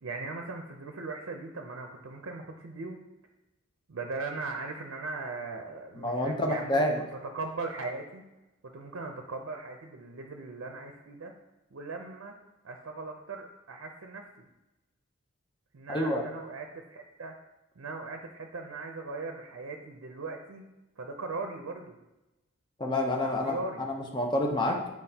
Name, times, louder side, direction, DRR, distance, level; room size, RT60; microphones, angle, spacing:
voice 1, 0.0-3.0 3.9-6.9 7.3-8.2 8.6-11.3 11.7-12.3 12.6-14.5 15.7-17.4 17.8-20.6 21.0-22.0 23.2-23.9, right 3 dB, 70° right, 4 dB, 0.5 m, -39 dB
voice 2, 6.0-7.0 15.9-16.2 22.8-24.9, left 1 dB, 20° left, 2 dB, 0.6 m, -28 dB
7.6 x 4.6 x 2.8 m, 0.99 s
head